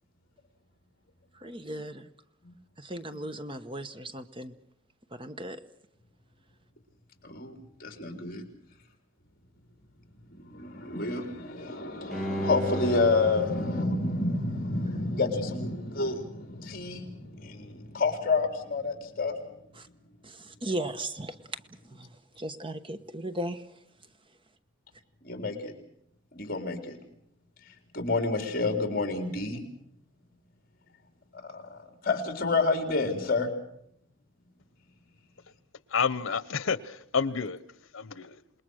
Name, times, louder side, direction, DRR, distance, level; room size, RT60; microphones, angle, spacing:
voice 1, 1.3-2.1 2.8-4.5 5.1-5.6 19.7-19.9 20.2-21.6 21.9-23.8, right 1 dB, 25° right, 1.0 m, -37 dB
voice 2, 7.2-7.6 7.8-8.4 10.3-19.3 25.2-25.7 26.3-27.0 27.9-29.6 31.4-33.5, left 3 dB, 45° left, 3.9 m, -29 dB
Bowed string instrument, 12.1-15.2 15.6-15.7, left 1 dB, ahead, 2.1 m, -36 dB
voice 3, 35.9-37.6 37.9-38.4, left 6 dB, 85° left, 1.0 m, -29 dB
27.5 x 20.5 x 6.5 m
head